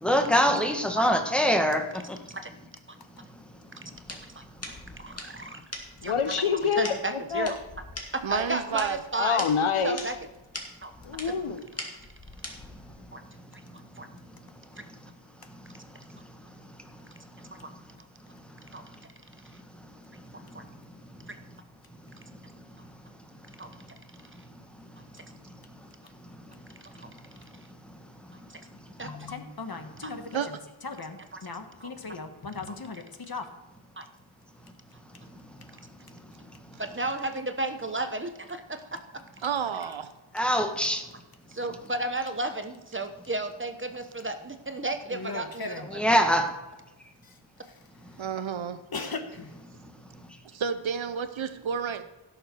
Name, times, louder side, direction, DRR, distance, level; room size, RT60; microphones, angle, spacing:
voice 1, 0.0-2.2 40.3-41.0 45.9-46.5, equal, ahead, 4 dB, 1.4 m, -23 dB
sound 1, 4.0-13.0, left 1 dB, 30° left, 2.2 m, -42 dB
voice 2, 5.0-5.6 6.0-6.1 6.7-7.6 8.1-9.4 9.8-10.2 10.8-10.9 13.1-13.2 14.0-14.1 18.7-18.8 20.5-20.6 21.3-21.4 23.6-23.7 25.1-25.2 27.0-27.1 28.5-28.6 29.0-29.3 30.0-30.1 31.8-31.9 32.7-32.8 34.0-34.1 36.8-39.4 41.5-45.7, right 2 dB, 25° right, 7 dB, 1.0 m, -33 dB
voice 3, 6.0-7.5 9.2-10.0 11.0-11.6, left 6 dB, 80° left, 10 dB, 1.0 m, -26 dB
voice 4, 8.2-9.0 30.3-30.5 39.4-40.1 48.2-48.8 50.5-52.0, right 7 dB, 70° right, 11 dB, 0.9 m, -30 dB
voice 5, 29.0-33.4 39.8-39.9 45.1-45.9 47.2-47.8 48.9-49.5, left 4 dB, 45° left, 7 dB, 1.4 m, -38 dB
16.0 x 6.7 x 4.5 m, 1.1 s
wide cardioid pair, 75°, 49 cm